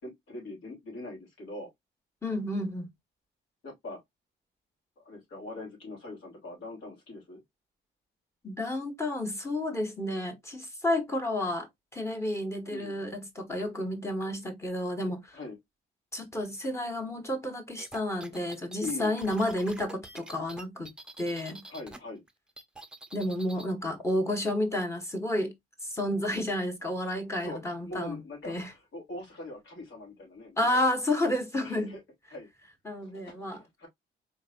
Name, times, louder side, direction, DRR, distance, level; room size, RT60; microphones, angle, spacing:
voice 1, 0.0-1.7 3.6-4.0 5.0-7.4 12.7-13.0 15.3-15.6 18.8-19.2 21.7-22.2 27.3-30.7 31.6-32.0 32.3-32.5 33.0-33.9, left 2 dB, 75° left, 3.1 m, -42 dB
voice 2, 2.2-2.9 8.4-15.4 16.1-20.9 21.2-21.6 23.1-25.5 25.8-28.2 28.4-28.7 30.6-32.0 32.8-33.6, left 1 dB, 15° left, 1.3 m, -31 dB
sound 1, 17.8-22.0 22.3-23.7, right 1 dB, 5° right, 0.7 m, -46 dB
4.4 x 3.2 x 2.5 m
cardioid pair, 90°, 20 cm